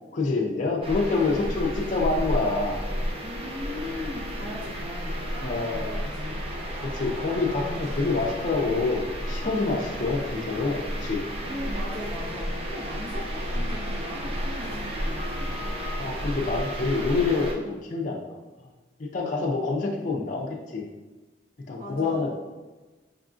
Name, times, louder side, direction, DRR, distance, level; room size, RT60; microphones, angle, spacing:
voice 1, 0.1-2.8 5.4-5.9 6.8-11.2 16.0-18.2 19.0-20.8 21.7-22.3, left 3 dB, 45° left, -1 dB, 0.4 m, -27 dB
sound 1, 0.8-17.5, equal, 35° right, 0.4 m, -32 dB
voice 2, 3.2-6.5 11.4-15.7 21.8-22.3, left 1 dB, 60° right, -7 dB, 1.2 m, -39 dB
4.8 x 2.4 x 2.4 m, 1.2 s
head